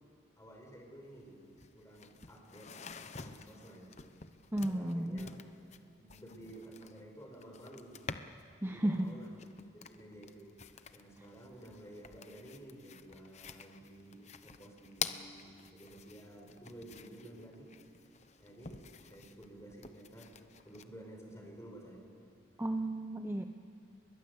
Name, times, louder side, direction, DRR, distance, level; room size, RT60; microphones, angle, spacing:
voice 1, 0.4-1.5 1.7-2.7 3.1-4.0 4.6-5.4 6.0-8.0 8.6-9.3 9.7-10.6 10.9-17.7 18.4-20.3 20.6-22.1, right 1 dB, 15° left, 0 dB, 5.3 m, -52 dB
sound 1, 1.1-1.2 1.4-8.5 8.9-20.8, left 6 dB, 35° left, 0.9 m, -48 dB
voice 2, 4.5-5.3 8.6-9.1 22.6-23.4, right 1 dB, 10° right, 6 dB, 0.7 m, -33 dB
29.5 x 22.0 x 8.1 m, 2.4 s
head